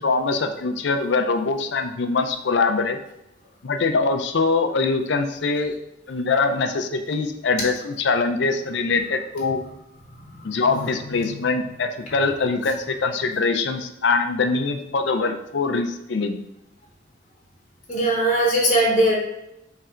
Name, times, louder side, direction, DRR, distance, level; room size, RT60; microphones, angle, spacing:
voice 1, 0.0-3.0 3.6-5.7 6.1-9.6 10.4-16.4, left 4 dB, 65° left, 7 dB, 0.5 m, -23 dB
voice 2, 10.3-11.5 17.9-19.2, right 1 dB, 35° left, -4 dB, 0.9 m, -22 dB
3.7 x 3.2 x 4.3 m, 0.88 s
head